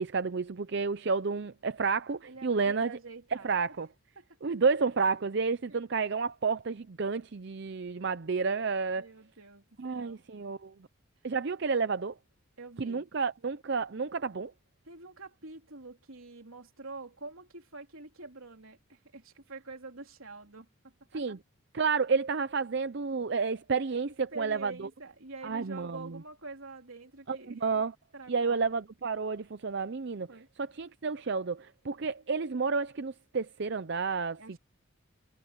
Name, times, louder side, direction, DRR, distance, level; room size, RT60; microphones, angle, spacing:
voice 1, 0.0-2.9 3.4-3.9 4.4-9.1 9.8-10.7 11.2-12.1 12.8-14.5 21.1-21.4 21.7-24.7 25.4-26.2 27.3-27.9 28.3-30.3 30.6-34.6, right 5 dB, 55° right, 0.5 m, -30 dB
voice 2, 2.3-3.6 4.1-4.3 5.7-5.8 8.9-9.6 9.9-10.2 12.6-13.1 14.8-20.7 21.1-21.4 24.3-27.6 28.1-28.6 30.3-30.5 34.4-34.6, right 3 dB, 75° right, 3.5 m, -46 dB
head